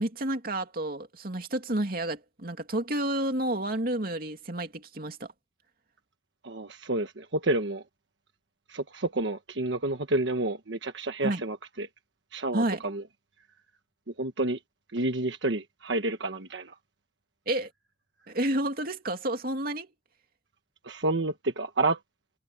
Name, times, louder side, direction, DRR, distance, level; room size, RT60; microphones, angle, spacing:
voice 1, 0.0-5.3 11.2-11.4 12.5-12.8 17.5-17.7 18.3-19.9, right 1 dB, 55° right, 2.7 m, -30 dB
voice 2, 6.4-7.8 8.7-11.9 12.3-13.0 14.2-14.6 14.9-16.8 20.8-22.0, right 2 dB, 80° right, 1.3 m, -29 dB
head